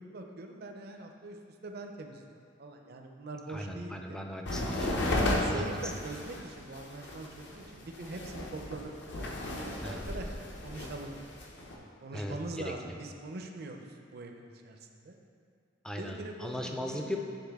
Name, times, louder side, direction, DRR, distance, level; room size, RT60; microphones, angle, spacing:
voice 1, 0.0-1.4 1.6-4.2 5.3-11.1 11.8-15.1 16.0-17.2, right 2 dB, 55° right, 3 dB, 0.5 m, -43 dB
voice 2, 3.5-5.1 5.4-5.9 9.8-10.0 12.1-12.7 15.8-17.2, equal, 5° left, 2 dB, 0.3 m, -38 dB
sound 1, 4.5-11.8, left 1 dB, 60° left, 0.8 m, -34 dB
9.3 x 3.7 x 3.5 m, 2.2 s
head